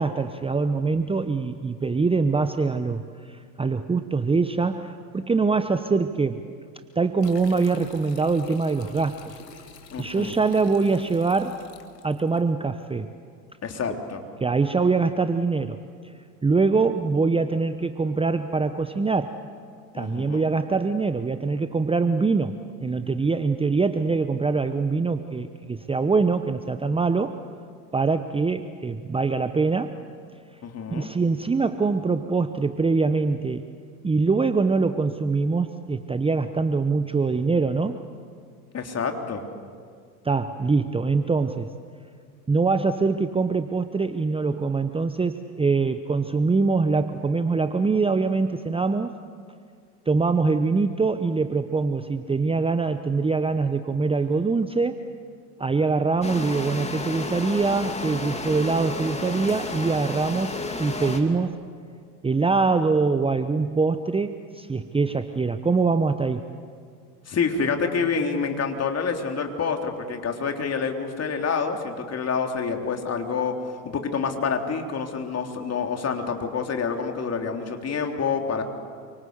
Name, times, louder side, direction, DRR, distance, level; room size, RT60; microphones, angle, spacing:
voice 1, 0.0-6.4 7.0-9.2 10.0-11.6 12.0-13.1 14.4-15.8 16.4-19.4 19.9-27.4 27.9-30.0 30.9-33.7 34.0-38.0 40.2-41.7 42.5-49.1 50.1-55.0 55.6-61.6 62.2-66.4, right 4 dB, 10° right, 10 dB, 1.0 m, -23 dB
sound 1, 7.2-12.4, left 5 dB, 85° left, 2.3 m, -47 dB
voice 2, 9.9-10.4 13.6-14.2 19.9-20.5 30.6-31.1 38.7-39.4 67.3-78.6, left 5 dB, 30° left, 3 dB, 3.6 m, -27 dB
sound 2, 56.2-61.2, left 3 dB, 15° left, 3.0 m, -32 dB
28.5 x 25.0 x 8.1 m, 2.1 s
hypercardioid pair, 80°, 48 cm